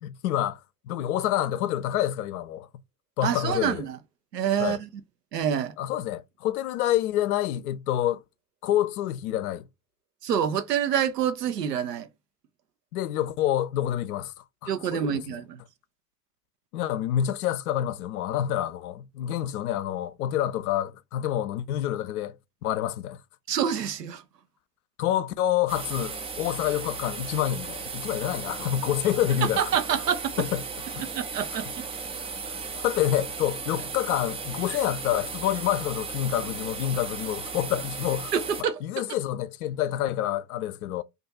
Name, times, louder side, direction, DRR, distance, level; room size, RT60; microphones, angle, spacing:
voice 1, 0.0-2.7 3.2-3.8 4.6-4.8 5.8-8.2 8.6-9.6 12.9-14.3 14.6-15.4 16.7-22.4 22.6-23.2 25.0-29.6 30.4-30.6 30.9-31.1 31.5-31.7 32.2-38.3 38.8-41.0, left 12 dB, 65° left, 0.5 m, -28 dB
voice 2, 3.2-4.0 4.3-4.9 5.3-5.7 10.2-12.1 14.7-15.6 23.5-24.2 29.6-30.3 31.0-31.8 34.7-34.8 38.3-38.8, right 8 dB, 85° right, 0.6 m, -27 dB
sound 1, 25.7-38.6, right 5 dB, 15° right, 0.3 m, -36 dB
2.5 x 2.3 x 4.0 m
figure-of-eight pair, 70°, 47 cm